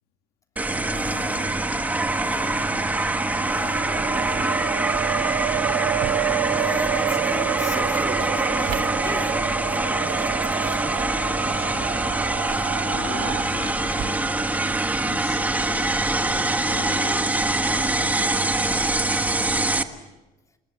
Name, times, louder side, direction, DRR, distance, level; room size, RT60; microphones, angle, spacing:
sound 1, 0.6-19.8, right 2 dB, 10° right, 1.3 m, -24 dB
sound 2, 0.7-10.9 11.2-19.3, right 9 dB, 65° right, 2.7 m, -43 dB
voice 1, 0.9-2.7 3.4-4.5 6.5-11.2, left 3 dB, 20° left, 3 dB, 3.3 m, -38 dB
sound 3, 1.2-13.4, right 13 dB, 90° right, 1.8 m, -30 dB
voice 2, 11.4-12.2 12.8-14.5 15.0-19.0, left 9 dB, 70° left, 6 dB, 2.0 m, -41 dB
27.5 x 21.0 x 8.2 m, 1.1 s
cardioid pair, 135°, 16 cm